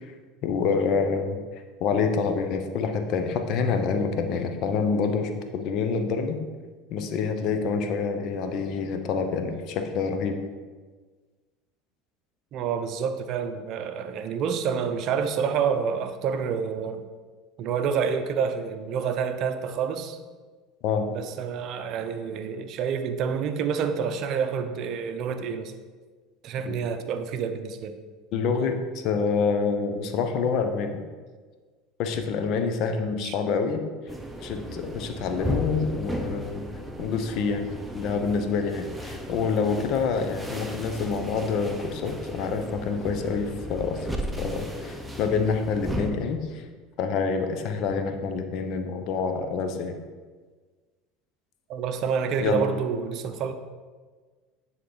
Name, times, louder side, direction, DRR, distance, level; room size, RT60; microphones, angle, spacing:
voice 1, 0.4-1.4 1.8-6.4 6.9-10.4 20.8-21.1 26.6-26.7 28.3-28.8 29.0-31.0 32.0-33.8 34.4-36.6 37.0-37.7 37.9-44.1 44.4-46.6 47.0-49.9 52.4-52.6, left 5 dB, 55° left, 7 dB, 0.8 m, -27 dB
voice 2, 12.5-17.1 17.6-20.2 21.1-25.7 26.4-27.9 33.2-33.3 51.7-53.5, right 6 dB, 55° right, 8 dB, 0.6 m, -28 dB
sound 1, 34.1-46.1, equal, 5° right, 0.8 m, -35 dB
9.4 x 3.8 x 3.9 m, 1.4 s
hypercardioid pair, 80°, 0 cm